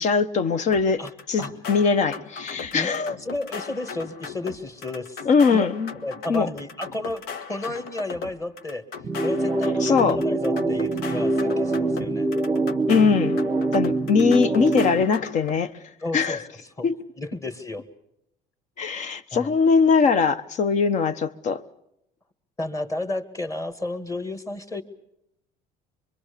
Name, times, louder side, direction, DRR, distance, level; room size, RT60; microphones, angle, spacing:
voice 1, 0.0-3.2 5.2-5.9 6.3-6.5 9.8-10.2 12.9-13.4 13.7-15.7 16.1-16.4 16.8-17.0 18.8-21.6, left 5 dB, 45° left, 1.3 m, -21 dB
sound 1, 0.7-15.6, left 6 dB, 65° left, 1.6 m, -38 dB
voice 2, 3.2-5.7 6.0-7.2 7.5-8.8 9.2-12.3 16.0-16.4 16.8-16.9 17.2-17.9 19.3-19.6 22.6-24.8, left 2 dB, 20° left, 2.0 m, -32 dB
sound 2, 9.0-15.0, right 2 dB, 15° right, 0.9 m, -24 dB
25.0 x 23.5 x 6.9 m
cardioid pair, 130°, 17 cm